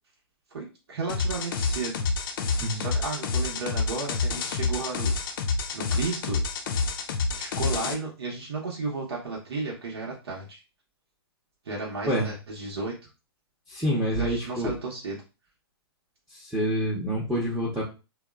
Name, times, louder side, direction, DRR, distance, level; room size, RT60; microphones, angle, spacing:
voice 1, 0.5-2.0 2.7-5.3 5.7-6.4 7.3-10.6 11.6-12.9 14.2-15.2, right 3 dB, 75° right, -2 dB, 0.8 m, -33 dB
sound 1, 1.1-7.9, left 4 dB, 60° left, 0.4 m, -28 dB
voice 2, 13.7-14.7 16.3-17.8, equal, ahead, -7 dB, 0.6 m, -27 dB
2.9 x 2.0 x 2.3 m, 0.30 s
hypercardioid pair, 130°, 13 cm